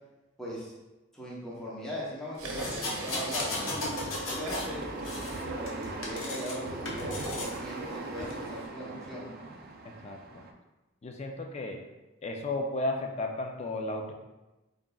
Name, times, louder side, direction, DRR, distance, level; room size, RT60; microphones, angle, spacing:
voice 1, 0.4-0.7 1.1-3.5 4.0-9.3, equal, ahead, -8 dB, 0.8 m, -39 dB
sound 1, 2.4-7.7, right 2 dB, 85° right, 0.7 m, -41 dB
sound 2, 2.6-4.7 5.0-6.6 6.9-7.6 8.2-8.3, left 2 dB, 65° left, 0.7 m, -36 dB
sound 3, 2.6-10.5, right 3 dB, 45° right, 0.4 m, -41 dB
voice 2, 9.8-10.4 11.0-11.8 12.2-14.1, left 2 dB, 30° left, 3 dB, 0.4 m, -34 dB
3.7 x 3.6 x 2.3 m, 1.1 s
head